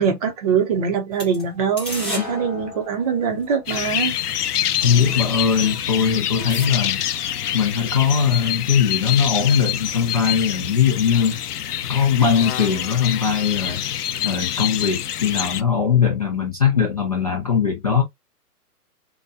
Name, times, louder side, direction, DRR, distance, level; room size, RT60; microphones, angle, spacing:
voice 1, 0.0-4.1, right 6 dB, 25° right, 0.7 m, -23 dB
sound 1, 1.1-3.8 4.4-4.5 4.8-6.7, left 1 dB, ahead, 1.3 m, -35 dB
sound 2, 3.7-15.6, left 11 dB, 75° left, 0.6 m, -26 dB
voice 2, 4.8-7.2 7.5-11.4 11.9-13.8 14.2-18.0, left 7 dB, 25° left, 0.4 m, -20 dB
4.0 x 2.2 x 2.5 m
hypercardioid pair, 145°, 48 cm